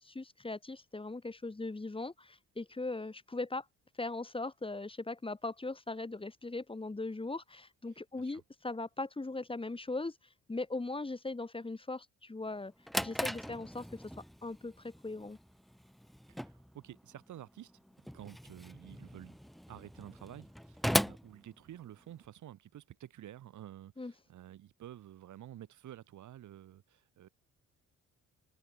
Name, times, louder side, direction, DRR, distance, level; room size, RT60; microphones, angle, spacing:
voice 1, 0.0-3.6 4.0-10.1 10.5-12.7 13.0-14.0 14.4-15.4 24.0-24.1, left 2 dB, 20° left, 2.8 m, -39 dB
Drawer open or close, 12.5-22.3, equal, ahead, 2.3 m, -39 dB
voice 2, 16.3-17.7 18.1-19.4 19.7-27.3, right 12 dB, 75° right, 5.2 m, -51 dB
cardioid pair, 90°, 30 cm